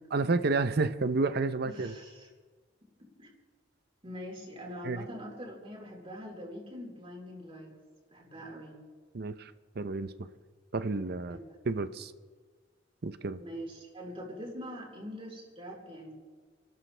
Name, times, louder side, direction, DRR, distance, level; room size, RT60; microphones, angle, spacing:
voice 1, 0.1-1.9 4.8-5.0 9.1-9.5 9.8-10.1 10.7-11.4 11.7-12.1 13.0-13.4, right 3 dB, 55° right, 12 dB, 0.7 m, -30 dB
voice 2, 1.7-2.3 3.2-3.3 4.0-7.7 8.1-8.8 11.3-11.4 13.3-16.1, equal, 30° right, -2 dB, 4.0 m, -43 dB
29.5 x 12.5 x 3.4 m, 1.5 s
head